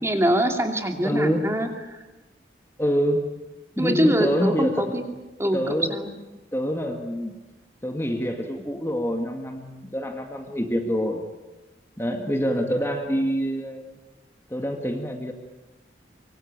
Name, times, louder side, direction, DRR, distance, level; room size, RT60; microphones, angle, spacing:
voice 1, 0.0-2.0 3.8-5.0 5.4-6.1, equal, 15° right, 4 dB, 2.6 m, -24 dB
voice 2, 1.0-1.5 2.8-3.2 3.8-4.9 5.5-6.0 6.5-7.3 7.8-11.2 12.0-14.0 14.5-15.3, equal, 15° left, 4 dB, 2.0 m, -26 dB
25.0 x 24.5 x 8.8 m, 1.1 s
head